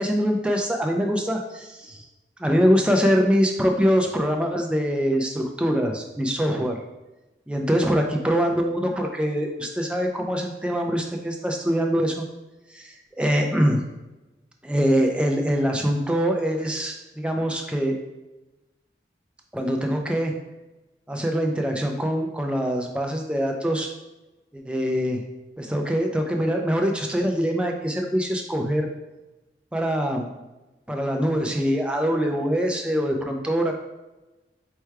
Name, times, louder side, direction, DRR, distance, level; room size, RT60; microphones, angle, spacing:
voice 1, 0.0-2.0 2.4-6.8 7.5-12.2 12.7-13.8 14.6-18.0 19.5-20.4 21.1-23.9 24.5-25.2 25.6-28.9 29.7-30.3 30.9-33.7, equal, 5° right, 2 dB, 0.3 m, -23 dB
4.5 x 2.2 x 4.5 m, 1.1 s
head